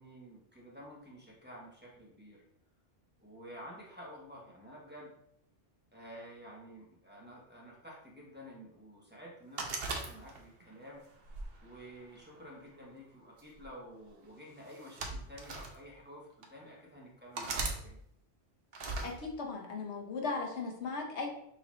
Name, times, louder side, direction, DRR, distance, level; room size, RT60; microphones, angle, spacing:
voice 1, 0.0-2.4 3.2-5.1 5.9-11.0 11.6-18.0, equal, 10° right, -5 dB, 1.1 m, -51 dB
sound 1, 9.6-10.6 11.3-12.4 13.4-13.7 14.7-15.7 16.4-16.5 17.3-17.8 18.7-19.1, right 3 dB, 60° right, 0.9 m, -38 dB
voice 2, 19.0-21.3, left 4 dB, 70° left, 1 dB, 1.2 m, -37 dB
5.8 x 2.8 x 3.1 m, 0.73 s
omnidirectional pair, 1.2 m